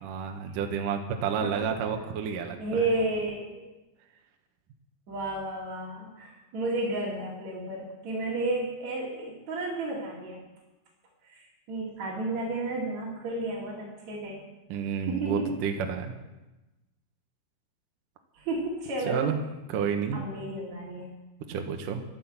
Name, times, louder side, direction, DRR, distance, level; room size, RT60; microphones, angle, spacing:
voice 1, 0.0-2.8 14.7-16.1 19.0-19.4 19.7-20.2 21.5-22.0, right 7 dB, 75° right, 4 dB, 1.9 m, -30 dB
voice 2, 2.6-3.6 5.1-10.4 11.3-14.4 15.1-15.6 18.3-19.2 20.1-21.1, right 2 dB, 45° right, -5 dB, 3.2 m, -32 dB
13.0 x 12.5 x 7.3 m, 1.1 s
omnidirectional pair, 5.6 m